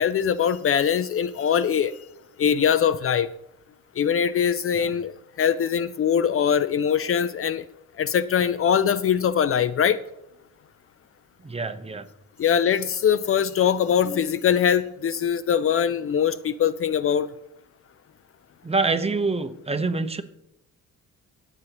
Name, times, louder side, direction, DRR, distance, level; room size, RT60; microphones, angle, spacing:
voice 1, 0.0-1.9 2.4-3.3 4.0-7.7 8.0-10.0 12.4-17.3, left 8 dB, 45° left, 15 dB, 0.5 m, -22 dB
voice 2, 11.4-12.1 18.6-20.2, right 3 dB, 20° right, 8 dB, 0.9 m, -26 dB
24.0 x 8.1 x 3.0 m, 0.82 s
cardioid pair, 90°, 30 cm